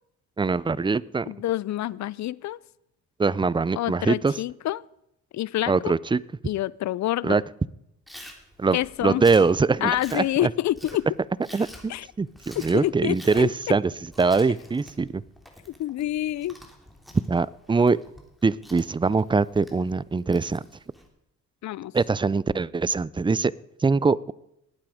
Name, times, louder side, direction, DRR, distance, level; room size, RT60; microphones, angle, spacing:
voice 1, 0.4-1.3 3.2-4.3 5.7-6.2 7.2-7.4 8.6-10.5 11.5-13.9 14.2-15.2 17.3-18.0 18.4-20.6 21.9-23.5 23.8-24.3, right 4 dB, 15° right, 21 dB, 0.5 m, -23 dB
voice 2, 1.2-2.6 3.8-4.8 5.3-5.9 6.4-7.4 8.7-9.2 9.8-11.1 11.9-12.1 12.7-13.5 15.7-16.6 21.6-21.9, left 14 dB, 60° left, 22 dB, 0.5 m, -27 dB
Chewing mastication, 8.1-21.1, equal, ahead, 3.1 m, -48 dB
19.0 x 8.9 x 5.0 m, 0.81 s
cardioid pair, 70°, 31 cm